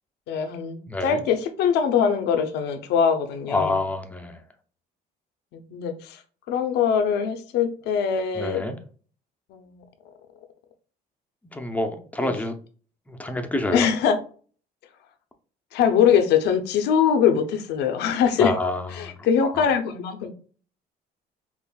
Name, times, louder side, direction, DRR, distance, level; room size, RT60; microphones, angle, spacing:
voice 1, 0.3-3.8 5.5-6.2 6.5-8.6 9.5-9.8 12.2-12.3 13.7-14.2 15.7-18.5 18.9-20.3, left 7 dB, 80° left, 0.7 m, -22 dB
voice 2, 0.9-1.2 3.5-4.4 8.4-8.8 11.5-12.5 13.1-13.9 18.4-19.1 19.4-19.6, left 2 dB, 10° left, 0.6 m, -27 dB
5.5 x 2.5 x 2.3 m
cardioid pair, 110°, 17 cm